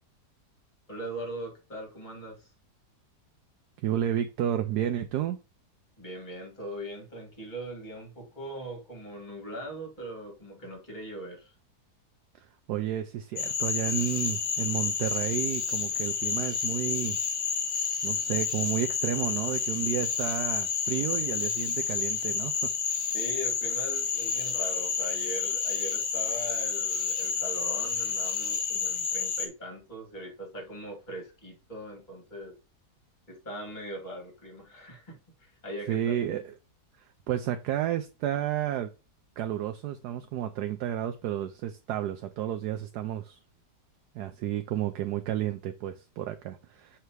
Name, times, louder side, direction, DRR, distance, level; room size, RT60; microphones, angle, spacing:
voice 1, 0.9-2.5 6.0-11.5 23.1-32.6 33.3-36.1, right 1 dB, 25° left, 2.9 m, -40 dB
voice 2, 3.8-5.4 12.7-17.2 18.0-22.7 35.9-36.5 37.3-38.9 39.4-43.4 44.1-47.0, right 11 dB, 75° right, 1.1 m, -31 dB
Cricket / Frog, 13.4-29.5, left 6 dB, 55° left, 1.6 m, -30 dB
6.7 x 3.4 x 4.6 m
omnidirectional pair, 1.8 m